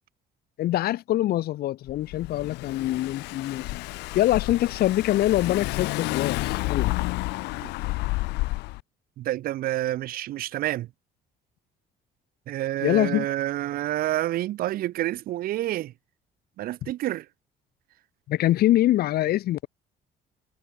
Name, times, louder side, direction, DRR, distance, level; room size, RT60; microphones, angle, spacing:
voice 1, 0.6-3.7 4.1-6.9 12.8-13.3 18.3-19.7, left 14 dB, 65° left, 0.9 m, -24 dB
Car / Engine, 1.9-8.8, left 21 dB, 90° left, 0.6 m, -30 dB
voice 2, 9.2-10.9 12.5-15.9 16.6-17.3, right 14 dB, 60° right, 0.5 m, -28 dB
cardioid pair, 110°, 17 cm